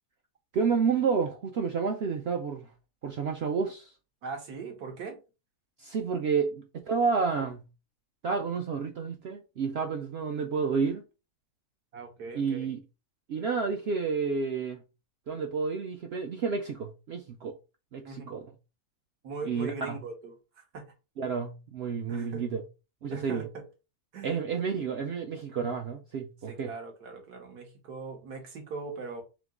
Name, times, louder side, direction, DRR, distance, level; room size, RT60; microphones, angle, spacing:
voice 1, 0.5-2.7 3.0-3.9 5.8-7.6 8.2-11.0 12.3-12.8 13.3-14.8 15.3-17.6 17.9-18.5 19.4-20.0 21.2-22.6 23.0-23.5 24.2-26.7, right 5 dB, 70° right, 0.6 m, -30 dB
voice 2, 4.2-5.2 11.9-12.7 18.1-18.3 19.2-20.3 20.7-20.8 22.1-22.4 23.1-23.6 24.1-24.4 24.8-25.0 26.5-29.2, right 4 dB, 90° right, 1.7 m, -40 dB
3.7 x 2.9 x 3.6 m
omnidirectional pair, 1.6 m